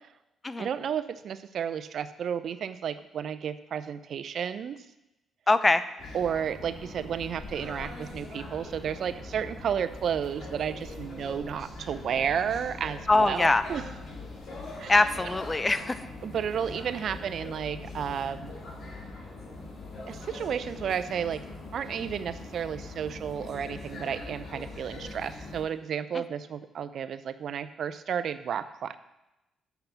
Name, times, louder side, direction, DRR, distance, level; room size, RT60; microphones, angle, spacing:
voice 1, 0.6-4.8 6.1-13.8 14.8-15.1 16.2-18.5 20.1-21.4 21.7-28.9, right 8 dB, 65° right, 12 dB, 0.5 m, -32 dB
voice 2, 5.5-5.8 13.1-13.6 14.9-16.0 26.1-26.2, left 2 dB, 25° left, 13 dB, 0.6 m, -23 dB
sound 1, 6.0-25.6, left 2 dB, 60° left, 2.9 m, -42 dB
7.0 x 5.7 x 7.0 m, 0.95 s
supercardioid pair, 65°, 0 cm